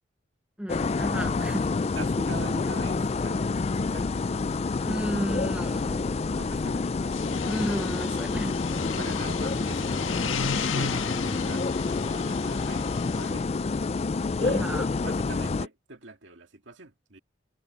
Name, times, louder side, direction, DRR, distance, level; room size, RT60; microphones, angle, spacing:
voice 1, 0.6-1.7 4.8-6.1 7.4-8.6 14.4-14.9, equal, 5° right, 0.6 m, -32 dB
sound 1, 0.7-15.7, left 3 dB, 30° left, 0.3 m, -28 dB
voice 2, 1.9-4.1 6.3-6.9 9.0-13.5 14.4-17.2, right 2 dB, 70° right, 2.0 m, -43 dB
sound 2, 7.0-13.3, left 6 dB, 85° left, 1.6 m, -35 dB
head